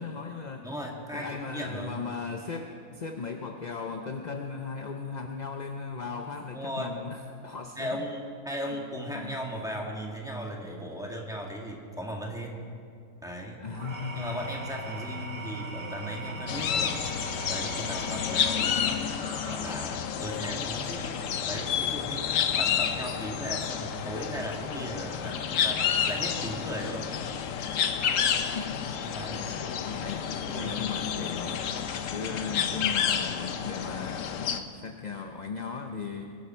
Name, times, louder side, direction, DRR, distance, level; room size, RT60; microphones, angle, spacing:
voice 1, 0.0-0.7 1.1-8.0 8.6-8.8 9.1-9.4 11.1-11.2 13.6-14.5 28.2-29.0 29.3-36.4, left 5 dB, 40° left, 4 dB, 0.7 m, -37 dB
voice 2, 0.6-2.0 6.5-7.0 7.8-12.6 13.2-13.6 14.2-17.1 17.5-19.0 19.4-22.3 22.6-27.1 29.0-29.5 30.4-30.8, equal, 5° right, -1 dB, 1.9 m, -37 dB
Engine / Tools, 13.7-20.1, right 1 dB, 50° right, 2.4 m, -39 dB
sound 1, 16.5-34.6, left 8 dB, 70° left, 1.1 m, -30 dB
22.0 x 11.5 x 4.5 m, 2.4 s
omnidirectional pair, 1.5 m